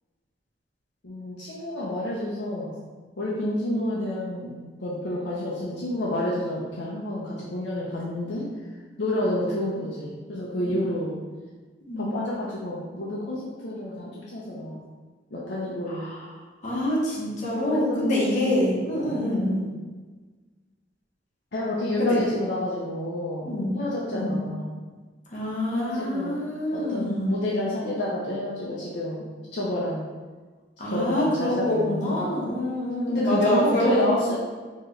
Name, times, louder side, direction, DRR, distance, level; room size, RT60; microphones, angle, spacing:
voice 1, 1.0-2.7 3.2-8.5 9.0-11.1 12.0-14.8 15.3-16.1 17.7-18.6 18.9-19.2 21.5-24.7 25.7-26.4 26.7-30.1 30.8-32.3 33.1-34.4, left 1 dB, 65° left, -6 dB, 0.7 m, -29 dB
voice 2, 16.6-19.7 22.0-22.2 23.5-23.8 24.1-24.4 25.3-27.3 30.8-34.1, left 1 dB, 40° left, -6 dB, 1.2 m, -26 dB
4.5 x 3.0 x 3.2 m, 1.3 s
head